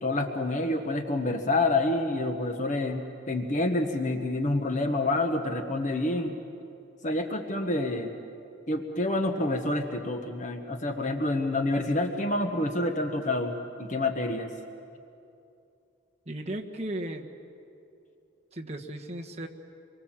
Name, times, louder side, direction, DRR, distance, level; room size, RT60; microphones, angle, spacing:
voice 1, 0.0-6.3 7.0-8.1 8.7-14.5, left 2 dB, 35° left, 5 dB, 1.2 m, -28 dB
voice 2, 16.2-17.3 18.5-19.5, right 1 dB, 30° right, 1 dB, 1.4 m, -35 dB
26.5 x 23.5 x 7.5 m, 2.7 s
head